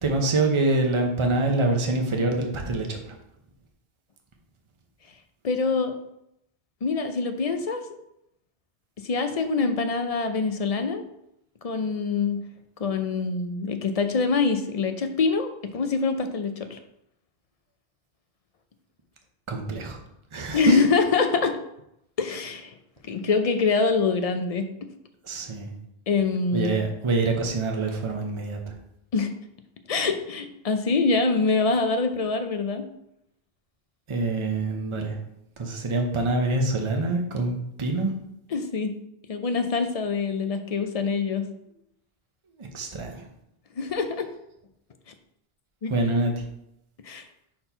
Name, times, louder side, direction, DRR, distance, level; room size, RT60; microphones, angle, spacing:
voice 1, 0.0-3.2 19.5-20.0 20.3-20.8 25.2-25.7 26.5-28.7 34.1-35.2 35.6-38.1 42.6-43.3 45.9-46.4, right 2 dB, 30° right, 2 dB, 0.8 m, -25 dB
voice 2, 5.4-6.0 6.8-7.9 9.0-11.0 11.6-12.4 12.8-16.8 20.5-21.6 22.2-22.8 23.0-24.7 26.1-26.8 29.1-29.3 29.9-32.8 38.5-38.9 39.3-41.5 43.8-44.3 45.8-45.9 47.0-47.3, left 4 dB, 45° left, 8 dB, 0.5 m, -25 dB
4.4 x 4.2 x 5.5 m, 0.79 s
omnidirectional pair, 1.1 m